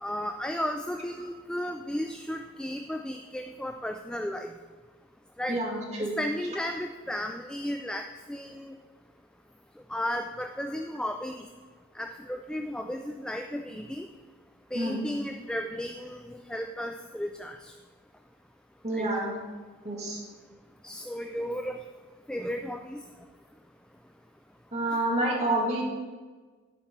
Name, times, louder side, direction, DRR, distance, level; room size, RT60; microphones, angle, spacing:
voice 1, 0.0-4.5 5.4-5.6 6.0-8.7 9.9-11.4 12.0-14.1 14.7-17.7 18.9-19.1 20.8-21.8 22.3-23.0, equal, 5° left, 5 dB, 0.3 m, -34 dB
voice 2, 5.5-6.2 14.7-15.1 18.8-19.4 19.8-20.2 24.7-25.8, right 1 dB, 35° right, -2 dB, 1.9 m, -28 dB
12.0 x 4.6 x 5.8 m, 1.4 s
head